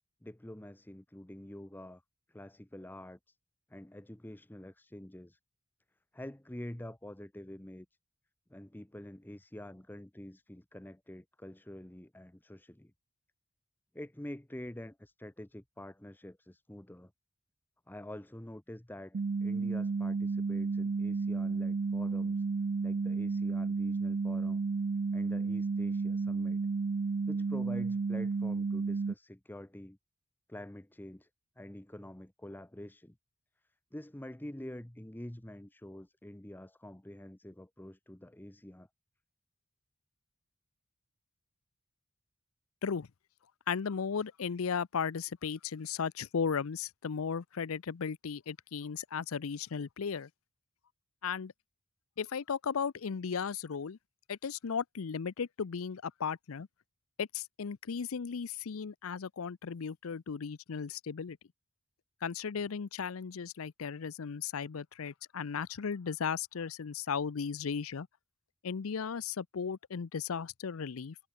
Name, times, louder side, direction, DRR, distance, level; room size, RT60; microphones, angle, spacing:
voice 1, 0.2-2.0 2.3-3.4 3.7-5.4 6.1-7.9 8.5-12.9 13.9-17.1 17.9-22.4 22.8-24.6 25.1-26.6 27.3-30.0 30.5-31.3 31.6-33.2 33.9-38.9, left 1 dB, 10° left, 0.8 m, -47 dB
sound 1, 19.1-29.1, right 4 dB, 45° right, 0.4 m, -32 dB
voice 2, 43.7-50.3 51.2-51.5 52.2-54.0 54.3-56.7 57.2-61.4 62.2-68.1 68.6-71.2, left 6 dB, 80° left, 0.6 m, -36 dB
head